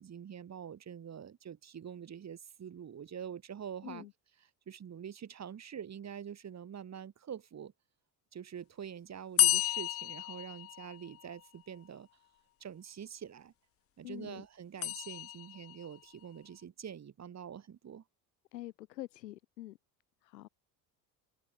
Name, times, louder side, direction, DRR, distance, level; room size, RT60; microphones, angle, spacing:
voice 1, 0.0-4.1 4.7-7.7 8.3-12.1 12.6-13.5 14.0-18.0, right 8 dB, 30° right, 2.1 m, -45 dB
sound 1, 9.4-11.3 14.8-15.9, left 15 dB, 30° left, 0.5 m, -31 dB
voice 2, 14.0-14.5 18.5-19.8 20.2-20.5, left 15 dB, 80° left, 0.6 m, -45 dB
figure-of-eight pair, 60°, 50 cm